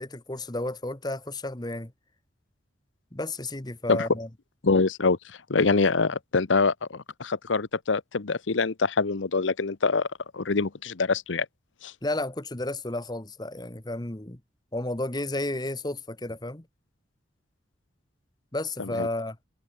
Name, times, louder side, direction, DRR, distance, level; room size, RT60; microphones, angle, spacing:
voice 1, 0.0-1.9 3.1-4.3 12.0-14.4 14.7-16.7 18.5-19.4, left 2 dB, 20° left, 1.3 m, -32 dB
voice 2, 4.6-10.1 10.3-11.5 11.8-11.9 18.8-19.1, left 4 dB, 85° left, 0.9 m, -25 dB
head